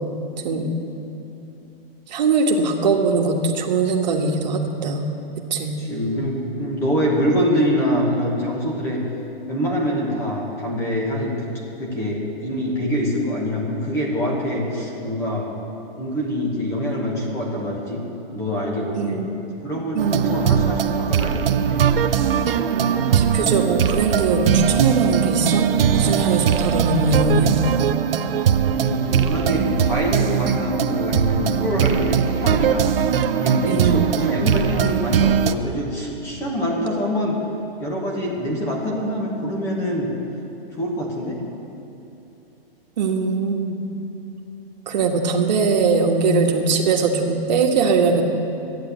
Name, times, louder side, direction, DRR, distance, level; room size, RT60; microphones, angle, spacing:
voice 1, 2.1-5.0 5.4-5.7 19.0-19.3 19.9-20.5 22.7-27.6 33.7-34.0 43.0-43.8 44.9-48.2, right 4 dB, 45° right, 1 dB, 1.6 m, -21 dB
voice 2, 5.8-9.0 9.5-15.5 15.9-18.0 18.3-19.2 19.6-21.9 28.7-32.9 33.3-37.4 37.8-40.1 40.8-41.4, equal, 10° left, -1 dB, 1.2 m, -25 dB
sound 1, 20.0-35.5, right 8 dB, 65° right, 0.7 m, -20 dB
13.0 x 10.0 x 8.2 m, 2.9 s
hypercardioid pair, 175°, 30 cm